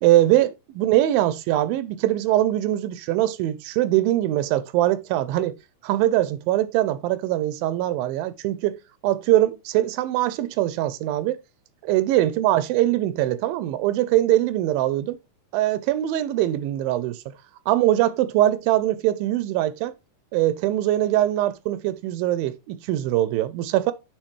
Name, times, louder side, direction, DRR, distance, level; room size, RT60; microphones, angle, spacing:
voice 1, 0.0-5.6 5.8-8.8 9.0-11.4 11.9-15.2 15.5-17.2 17.7-19.9 20.3-23.9, right 14 dB, 85° right, 2.4 m, -22 dB
7.3 x 5.0 x 3.2 m
omnidirectional pair, 4.0 m